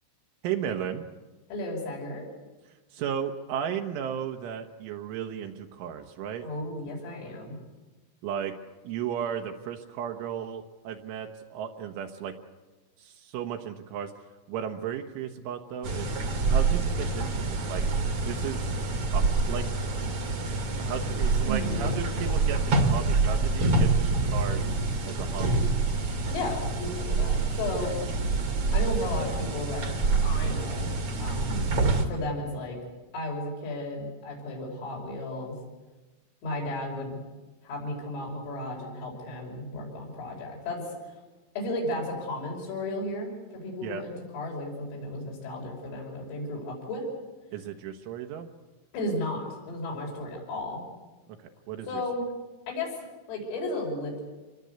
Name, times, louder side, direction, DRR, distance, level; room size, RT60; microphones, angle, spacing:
voice 1, 0.4-1.1 2.9-6.5 8.2-8.6 8.9-12.4 13.0-14.1 14.5-16.1 16.5-17.8 18.3-18.7 19.1-19.7 20.8-24.7 25.0-25.6 31.5-31.7 43.8-44.0 47.5-48.5 51.4-51.9, right 8 dB, 75° right, 4 dB, 3.5 m, -35 dB
voice 2, 1.5-2.3 6.4-7.6 21.4-21.9 26.3-27.9 28.7-29.9 30.2-30.9 31.2-31.6 32.0-32.8 33.1-35.6 36.4-37.2 37.6-41.2 41.6-47.1 48.9-50.9 51.9-52.3 52.7-54.2, left 1 dB, 80° left, -2 dB, 8.0 m, -34 dB
sound 1, 15.8-32.1, right 3 dB, 45° right, 1.9 m, -26 dB
27.0 x 20.0 x 8.1 m, 1.2 s
omnidirectional pair, 5.9 m